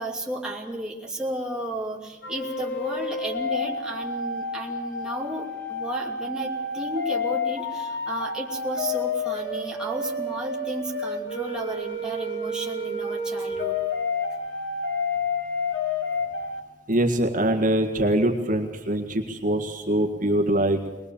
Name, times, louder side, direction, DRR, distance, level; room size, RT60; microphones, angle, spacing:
voice 1, 0.0-13.8, right 1 dB, 5° right, -3 dB, 2.8 m, -33 dB
sound 1, 2.2-16.6, left 3 dB, 70° left, 3.3 m, -30 dB
voice 2, 16.9-20.8, right 1 dB, 45° right, 3 dB, 1.9 m, -23 dB
22.0 x 21.0 x 7.2 m, 1.1 s
head